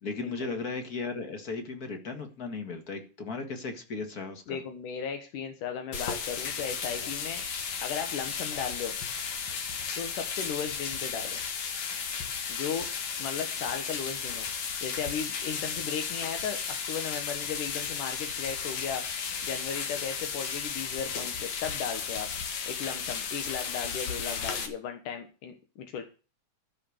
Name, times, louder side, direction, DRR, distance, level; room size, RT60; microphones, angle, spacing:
voice 1, 0.0-4.6, left 4 dB, 35° left, 6 dB, 1.7 m, -36 dB
voice 2, 4.5-7.4 7.8-8.9 10.0-11.4 12.5-12.9 13.2-14.5 14.8-19.1 19.4-22.3 22.7-26.0, left 7 dB, 80° left, 6 dB, 2.8 m, -36 dB
sound 1, 5.9-24.7, left 6 dB, 65° left, 2.8 m, -34 dB
14.0 x 6.4 x 6.5 m, 0.35 s
omnidirectional pair, 3.7 m